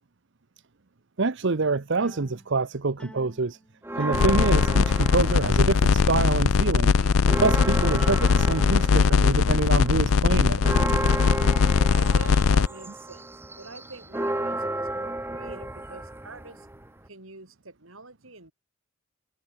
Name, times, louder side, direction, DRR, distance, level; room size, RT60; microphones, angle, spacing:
voice 1, 1.2-3.6 3.9-6.9 7.4-10.6, right 3 dB, 60° right, 0.9 m, -26 dB
sound 1, 2.0-2.7 3.0-4.7 5.0-5.6 6.0-6.7 7.0-7.6 8.0-9.7, equal, 5° left, 5.5 m, -50 dB
sound 2, 3.8-6.2 6.6-17.1, right 1 dB, 10° right, 1.1 m, -33 dB
sound 3, 4.1-12.7, left 5 dB, 85° left, 0.5 m, -20 dB
voice 2, 11.9-13.3 13.6-16.7 17.1-18.5, right 3 dB, 80° right, 5.0 m, -45 dB
head